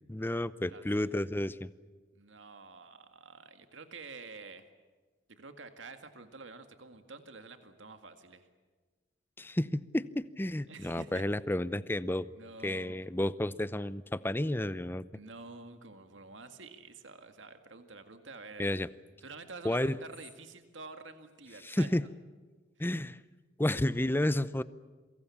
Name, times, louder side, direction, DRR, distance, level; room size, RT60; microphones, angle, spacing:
voice 1, 0.1-1.7 9.4-12.3 12.6-15.0 18.6-18.9 19.6-20.0 21.6-22.1 22.8-23.2 23.6-24.6, left 1 dB, 10° left, 16 dB, 0.7 m, -31 dB
voice 2, 2.1-4.6 5.3-8.5 10.7-11.2 12.3-13.0 15.1-18.7 19.2-21.9 22.8-22.9, right 3 dB, 80° right, 8 dB, 2.0 m, -49 dB
28.0 x 23.5 x 7.2 m, 1.4 s
head